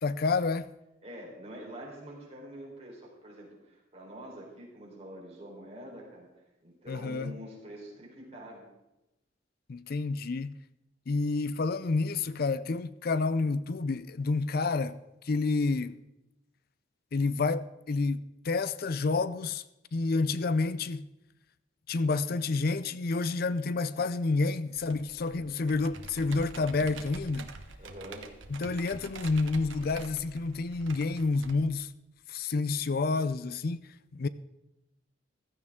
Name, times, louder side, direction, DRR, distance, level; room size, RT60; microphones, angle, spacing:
voice 1, 0.0-0.7 6.9-7.4 9.7-10.6 11.1-15.0 15.3-16.0 17.1-19.6 19.9-21.1 21.9-27.5 28.5-31.9 32.3-33.8 34.1-34.3, left 3 dB, 50° left, 0.5 m, -29 dB
voice 2, 1.0-6.3 6.6-8.6 25.5-25.6 27.8-28.3, right 1 dB, 35° right, 3.9 m, -46 dB
Computer keyboard, 24.8-31.5, right 3 dB, 80° right, 1.1 m, -46 dB
15.5 x 13.0 x 3.7 m
head